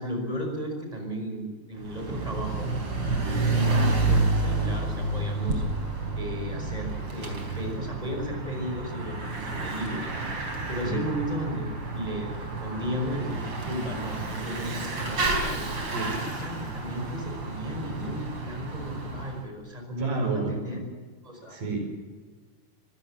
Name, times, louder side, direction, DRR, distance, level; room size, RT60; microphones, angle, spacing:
voice 1, 0.0-2.7 3.4-5.6 6.2-15.7 16.2-20.8 21.2-21.6, equal, 10° right, 3 dB, 5.3 m, -34 dB
Bicycle / Mechanisms, 1.8-19.4, right 2 dB, 45° right, 4.8 m, -30 dB
voice 2, 3.2-3.6 10.8-11.0 15.8-16.4 20.0-20.8 21.5-22.1, right 3 dB, 85° right, 4 dB, 6.4 m, -32 dB
26.0 x 16.0 x 7.5 m, 1.5 s
omnidirectional pair, 3.6 m